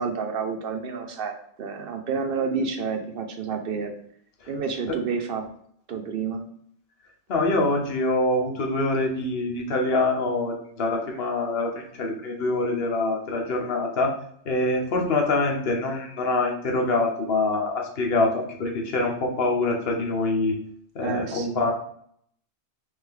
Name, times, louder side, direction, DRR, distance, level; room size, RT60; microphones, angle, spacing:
voice 1, 0.0-4.0 4.5-5.5 5.9-6.5 21.0-21.7, right 5 dB, 60° right, 5 dB, 0.7 m, -29 dB
voice 2, 7.3-14.1 14.4-20.6 20.9-21.7, left 2 dB, 60° left, 1 dB, 1.1 m, -25 dB
3.4 x 3.2 x 3.6 m, 0.65 s
omnidirectional pair, 1.1 m